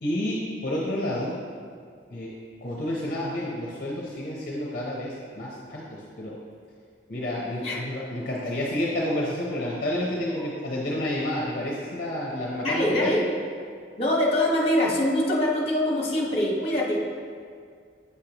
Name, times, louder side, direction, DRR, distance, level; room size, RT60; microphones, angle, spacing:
voice 1, 0.0-1.3 2.1-2.3 2.6-6.3 7.1-13.1, left 1 dB, 50° left, -4 dB, 0.8 m, -30 dB
voice 2, 12.6-13.2 14.0-17.0, left 1 dB, 30° left, -3 dB, 1.1 m, -24 dB
8.4 x 6.6 x 2.9 m, 2.1 s
head